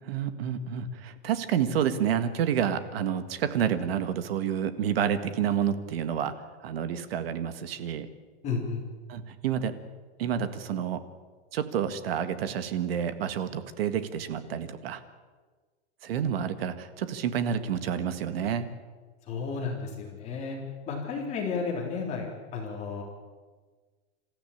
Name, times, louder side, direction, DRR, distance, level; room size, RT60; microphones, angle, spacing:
voice 1, 0.0-6.3 6.6-8.1 9.1-9.7 10.2-11.0 11.5-15.0 16.0-18.7, right 8 dB, 60° right, 11 dB, 1.9 m, -29 dB
voice 2, 8.4-8.8 19.3-20.6 20.9-23.0, left 5 dB, 20° left, 0 dB, 3.6 m, -32 dB
27.5 x 14.5 x 8.7 m, 1.4 s
supercardioid pair, 180°, 33 cm